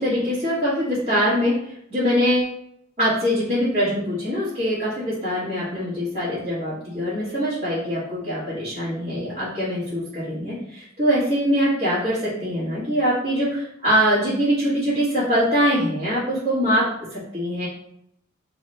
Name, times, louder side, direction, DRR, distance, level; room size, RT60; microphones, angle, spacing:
voice 1, 0.0-2.4 3.0-16.8 17.1-17.7, equal, 30° right, -14 dB, 1.4 m, -23 dB
3.4 x 2.2 x 4.2 m, 0.72 s
head